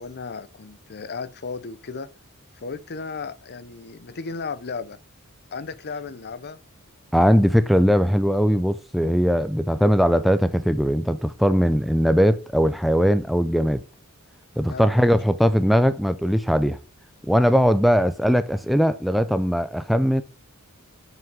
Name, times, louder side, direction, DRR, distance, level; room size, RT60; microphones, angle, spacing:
voice 1, 0.0-2.1 2.5-5.0 5.5-6.6 14.6-15.1 17.5-17.6, left 4 dB, 50° left, 0.6 m, -35 dB
voice 2, 7.1-13.8 14.6-16.8 17.3-20.2, equal, ahead, 0.4 m, -20 dB
7.6 x 6.0 x 4.8 m
head